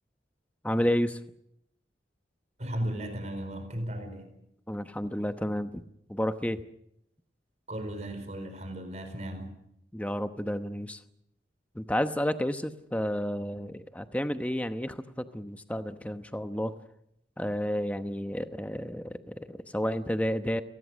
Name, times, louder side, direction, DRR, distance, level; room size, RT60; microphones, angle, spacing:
voice 1, 0.6-1.2 4.7-5.8 6.1-6.6 9.9-11.0 11.7-16.7 17.4-20.6, equal, 10° left, 9 dB, 0.9 m, -31 dB
voice 2, 2.6-4.3 7.7-9.5, right 1 dB, 40° right, 8 dB, 4.6 m, -35 dB
30.0 x 19.5 x 6.3 m, 0.76 s
head